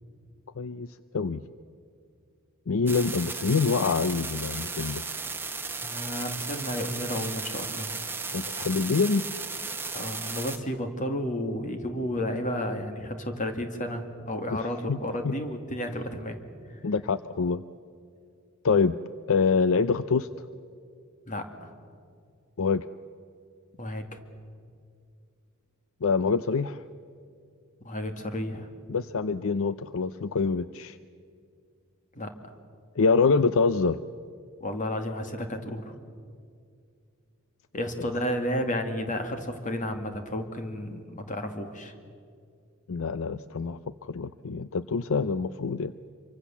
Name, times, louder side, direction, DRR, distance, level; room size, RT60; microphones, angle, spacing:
voice 1, 0.6-0.9 1.1-1.4 2.7-5.0 8.3-9.3 14.5-14.6 14.9-15.0 15.2-15.3 16.8-17.6 18.6-19.0 19.3-20.3 22.6-22.8 26.0-26.8 28.9-31.0 33.0-34.0 42.9-45.9, left 4 dB, 65° left, 13 dB, 0.6 m, -25 dB
sound 1, 2.9-10.6, right 4 dB, 10° right, 1.4 m, -35 dB
voice 2, 5.8-7.9 9.9-16.4 21.3-21.7 23.8-24.2 27.8-28.7 32.2-32.3 34.6-35.9 37.7-41.9, left 1 dB, 35° left, 6 dB, 2.2 m, -32 dB
26.5 x 24.0 x 7.2 m, 2.3 s
head